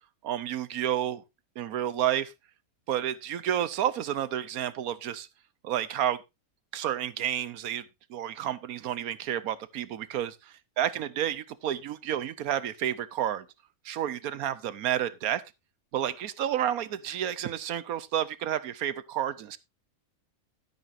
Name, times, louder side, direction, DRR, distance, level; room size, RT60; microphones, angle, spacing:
voice 1, 0.2-1.2 1.6-2.3 2.9-5.3 5.6-6.2 6.7-13.5 13.8-15.5 15.9-19.6, right 11 dB, 75° right, 1.2 m, -30 dB
12.5 x 9.8 x 2.6 m
omnidirectional pair, 1.6 m